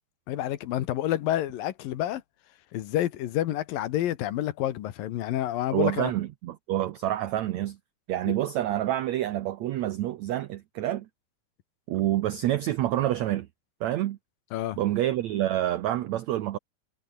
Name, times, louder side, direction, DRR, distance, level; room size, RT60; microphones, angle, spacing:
voice 1, 0.3-2.2 2.7-6.1 8.3-8.4 14.5-14.8, left 13 dB, 70° left, 2.8 m, -29 dB
voice 2, 5.7-7.8 8.1-11.1 11.9-13.5 13.8-14.2 14.8-16.6, right 13 dB, 85° right, 1.5 m, -27 dB
omnidirectional pair, 4.3 m